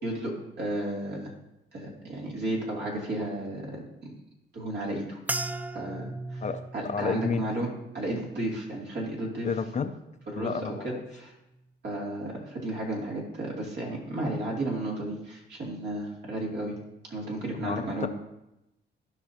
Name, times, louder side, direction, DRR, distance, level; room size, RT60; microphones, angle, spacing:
voice 1, 0.0-1.3 1.7-4.1 4.5-5.2 5.7-6.4 6.7-7.7 7.9-9.5 10.3-11.3 11.8-16.7 17.1-18.1, right 1 dB, 60° right, -2 dB, 2.8 m, -33 dB
sound 1, 5.3-9.8 10.2-10.8 11.4-11.6, right 2 dB, 10° right, 0.3 m, -39 dB
voice 2, 6.4-7.4 9.4-9.9 10.4-11.0 17.6-18.1, left 5 dB, 35° left, 8 dB, 0.6 m, -31 dB
15.0 x 5.7 x 2.9 m, 0.90 s
cardioid pair, 90°, 20 cm